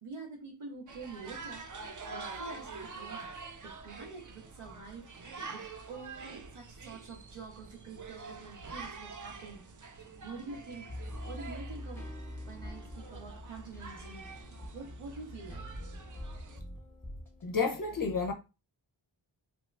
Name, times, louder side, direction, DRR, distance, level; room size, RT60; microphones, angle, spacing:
voice 1, 0.0-3.3 3.6-9.6 10.1-12.1 12.4-15.7, right 4 dB, 85° right, 1.0 m, -47 dB
sound 1, 0.9-16.6, right 4 dB, 40° right, 0.5 m, -46 dB
sound 2, 10.9-17.5, left 1 dB, 5° left, 0.9 m, -44 dB
voice 2, 17.4-18.3, left 5 dB, 45° left, 0.5 m, -30 dB
2.8 x 2.3 x 3.1 m
wide cardioid pair, 65°, 49 cm